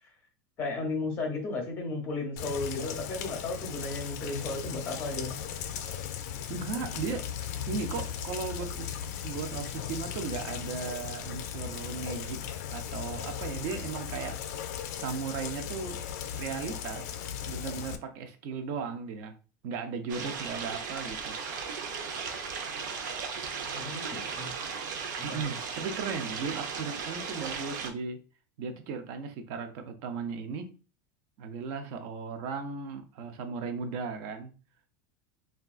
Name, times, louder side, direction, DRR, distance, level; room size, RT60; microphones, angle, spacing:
voice 1, 0.6-5.4 23.7-24.5 25.3-25.4, left 3 dB, 20° left, 0.7 m, -34 dB
Rain, 2.4-18.0, left 9 dB, 60° left, 0.4 m, -37 dB
voice 2, 6.5-7.3 7.7-12.4 12.7-14.4 15.0-16.0 16.3-17.1 17.5-19.3 19.6-21.4 25.2-28.2 28.6-30.7 31.4-34.5, right 5 dB, 40° right, 0.5 m, -36 dB
sound 1, 20.1-27.9, right 5 dB, 85° right, 0.6 m, -36 dB
3.5 x 2.3 x 2.4 m
supercardioid pair, 175°, 10 cm